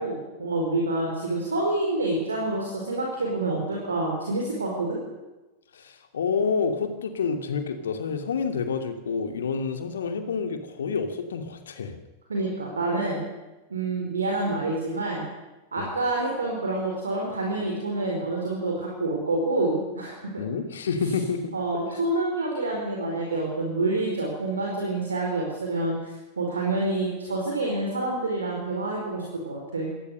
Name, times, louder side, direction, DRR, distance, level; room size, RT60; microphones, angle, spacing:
voice 1, 0.0-5.0 12.3-13.2 13.7-15.2 15.7-20.5 21.5-29.9, right 2 dB, 75° right, 0 dB, 4.6 m, -27 dB
voice 2, 5.7-12.0 15.8-15.9 20.4-21.5 21.9-22.0, left 5 dB, 65° left, 6 dB, 2.7 m, -28 dB
26.0 x 18.5 x 6.8 m, 1.1 s
figure-of-eight pair, 90°, 0 cm